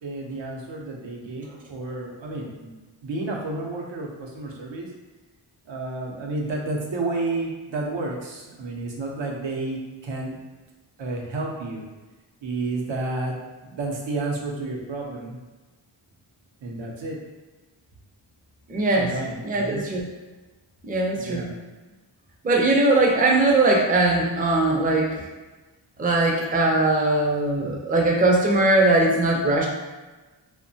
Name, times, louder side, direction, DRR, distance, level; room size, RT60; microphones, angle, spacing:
voice 1, 0.0-2.7 3.0-4.9 5.7-10.4 11.0-11.8 12.4-13.3 13.6-15.4 16.6-17.2 19.0-19.9 21.1-21.6, right 2 dB, 75° right, -1 dB, 0.6 m, -31 dB
voice 2, 18.7-19.1 19.4-20.0 20.9-21.5 22.4-25.2 26.0-29.7, right 2 dB, 20° right, -1 dB, 0.4 m, -20 dB
2.7 x 2.1 x 2.6 m, 1.2 s
wide cardioid pair, 75°, 46 cm